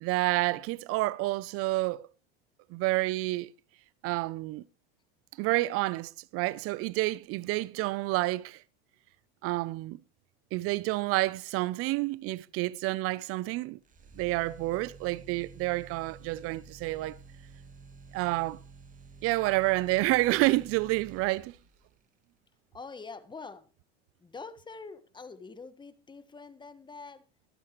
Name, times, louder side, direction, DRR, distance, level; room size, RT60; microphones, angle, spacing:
voice 1, 0.0-2.1 2.7-3.5 4.0-4.6 5.4-8.6 9.4-10.0 10.5-13.8 14.2-17.2 18.1-18.6 19.2-21.5, right 19 dB, 50° right, 0.5 m, -29 dB
sound 1, 13.8-21.8, right 4 dB, 25° right, 2.1 m, -51 dB
voice 2, 22.7-23.7 24.2-27.2, left 4 dB, 15° left, 1.5 m, -45 dB
24.0 x 8.6 x 3.1 m
supercardioid pair, 110°, 30 cm